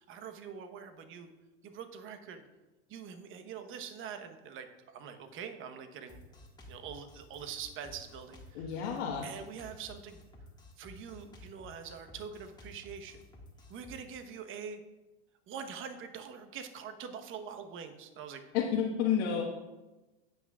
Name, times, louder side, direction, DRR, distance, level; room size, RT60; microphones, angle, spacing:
voice 1, 0.0-1.3 1.6-2.4 2.9-6.3 6.7-8.8 9.2-10.2 10.8-13.2 13.7-14.8 15.5-18.4, right 7 dB, 40° right, 7 dB, 1.1 m, -44 dB
Drum kit, 6.1-14.0, left 1 dB, 10° left, 1.6 m, -53 dB
voice 2, 8.5-9.2 18.5-19.4, left 8 dB, 65° left, -3 dB, 1.4 m, -30 dB
17.0 x 6.1 x 2.4 m, 1.1 s
hypercardioid pair, 110°, 33 cm